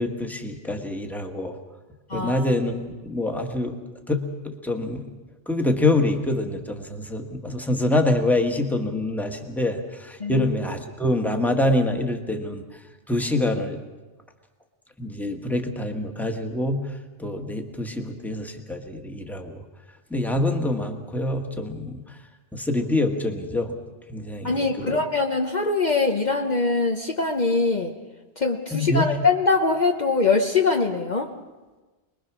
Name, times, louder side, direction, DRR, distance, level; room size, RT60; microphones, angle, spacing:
voice 1, 0.0-1.5 2.1-2.7 3.0-3.8 4.1-5.1 5.5-12.6 13.1-13.8 15.0-16.9 17.2-19.6 20.1-22.0 22.5-23.7 24.1-25.0 28.7-29.1, left 1 dB, ahead, 4 dB, 1.5 m, -25 dB
voice 2, 2.1-2.5 10.2-10.5 24.4-27.9 28.4-31.3, left 3 dB, 45° left, 3 dB, 1.1 m, -23 dB
24.5 x 21.0 x 6.1 m, 1.2 s
omnidirectional pair, 1.1 m